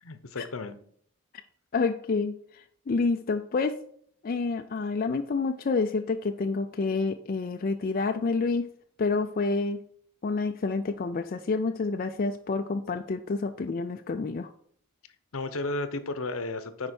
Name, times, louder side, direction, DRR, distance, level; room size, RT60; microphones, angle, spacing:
voice 1, 0.0-0.8 15.3-16.9, left 2 dB, 75° left, 11 dB, 0.8 m, -33 dB
voice 2, 1.7-3.7 4.2-8.7 9.0-9.8 10.2-14.5, left 4 dB, 40° left, 6 dB, 0.3 m, -28 dB
9.8 x 4.4 x 4.4 m, 0.62 s
head